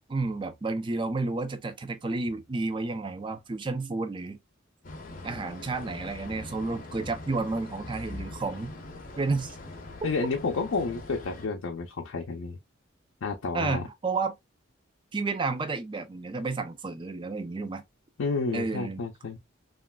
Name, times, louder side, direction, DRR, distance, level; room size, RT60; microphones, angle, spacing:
voice 1, 0.1-4.4 5.2-8.7 9.2-9.6 13.5-14.4 15.1-17.8 18.5-19.0, right 3 dB, 25° right, 0.3 m, -31 dB
sound 1, 4.8-11.5, left 2 dB, 45° left, 0.6 m, -42 dB
voice 2, 10.0-12.6 13.2-13.9 18.2-19.4, left 4 dB, 85° left, 0.5 m, -30 dB
3.0 x 2.4 x 2.2 m
head